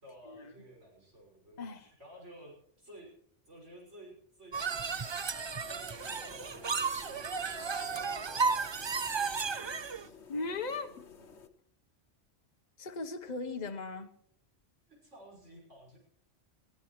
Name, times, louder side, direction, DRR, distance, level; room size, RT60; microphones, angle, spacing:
voice 1, 0.0-3.1 3.5-10.2 14.9-16.0, right 1 dB, 85° right, -1 dB, 6.3 m, -54 dB
voice 2, 1.6-1.9 10.3-10.9 12.8-14.1, left 3 dB, 40° left, 6 dB, 1.2 m, -38 dB
sound 1, 4.5-10.0, right 5 dB, 40° right, 0.3 m, -34 dB
sound 2, 5.6-11.5, left 5 dB, 70° left, 1.4 m, -55 dB
22.5 x 14.5 x 3.2 m, 0.65 s
omnidirectional pair, 1.2 m